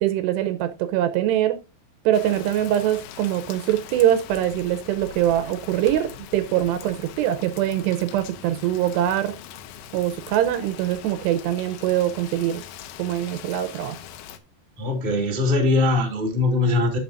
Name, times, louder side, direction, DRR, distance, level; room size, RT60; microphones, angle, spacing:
voice 1, 0.0-1.6 2.1-9.3 9.9-12.6 13.0-14.0, right 12 dB, 80° right, 10 dB, 2.8 m, -23 dB
Rain, 2.1-14.4, left 10 dB, 90° left, 3.1 m, -41 dB
voice 2, 14.8-17.0, left 2 dB, 20° right, 1 dB, 1.8 m, -21 dB
11.5 x 6.9 x 2.5 m, 0.29 s
omnidirectional pair, 5.0 m